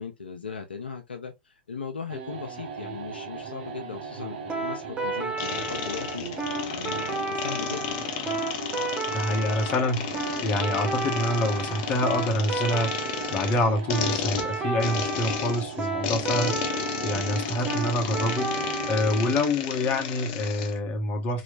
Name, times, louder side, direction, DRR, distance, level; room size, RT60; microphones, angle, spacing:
voice 1, 0.0-8.0, left 5 dB, 80° left, 0.7 m, -38 dB
sound 1, 2.1-19.1, right 5 dB, 60° right, 1.2 m, -38 dB
sound 2, 4.5-19.3, right 3 dB, 20° right, 0.9 m, -32 dB
sound 3, 5.4-20.8, left 8 dB, 45° left, 0.7 m, -33 dB
voice 2, 9.1-21.4, left 1 dB, 30° left, 1.2 m, -27 dB
3.1 x 3.1 x 2.5 m
figure-of-eight pair, 100°, 5 cm